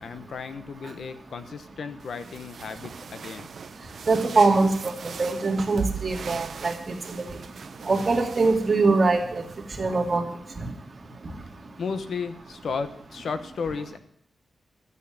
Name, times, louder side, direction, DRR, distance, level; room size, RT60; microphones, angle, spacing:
voice 1, 0.0-3.5 11.8-14.0, left 5 dB, 70° left, 10 dB, 1.2 m, -34 dB
sound 1, 2.0-10.2, right 6 dB, 60° right, 1.0 m, -39 dB
voice 2, 4.1-6.7 7.1-7.3 7.8-9.4 9.8-10.3, right 3 dB, 35° right, 2 dB, 2.6 m, -22 dB
12.5 x 8.4 x 9.1 m, 0.70 s
wide cardioid pair, 135°, 0 cm